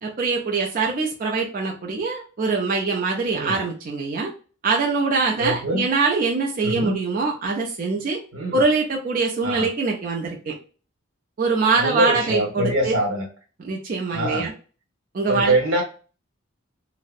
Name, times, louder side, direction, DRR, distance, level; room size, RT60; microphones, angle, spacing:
voice 1, 0.0-4.3 4.6-8.2 8.5-10.5 11.4-12.9 13.6-14.5 15.1-15.5, right 4 dB, 45° right, 0 dB, 0.4 m, -23 dB
voice 2, 5.4-5.9 6.6-6.9 8.3-8.6 9.4-9.7 11.8-13.3 14.1-14.5 15.3-15.8, right 1 dB, 90° right, 1 dB, 0.9 m, -24 dB
2.6 x 2.0 x 2.4 m, 0.37 s
head